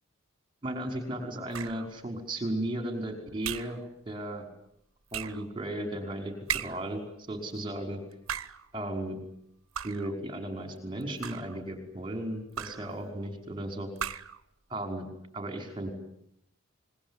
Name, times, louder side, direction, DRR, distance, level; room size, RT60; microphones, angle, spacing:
voice 1, 0.6-3.8 4.1-4.4 5.1-6.3 6.6-7.0 7.3-8.0 8.7-9.2 9.8-13.9 14.7-15.1 15.3-15.9, right 1 dB, 20° right, 5 dB, 5.4 m, -35 dB
sound 1, 1.5-1.9 3.4-3.8 5.1-5.5 6.5-7.0 8.1-8.7 9.8-10.2 11.0-11.6 12.6-13.0 14.0-14.4, right 8 dB, 65° right, 1.1 m, -36 dB
26.5 x 22.0 x 9.9 m, 0.75 s
head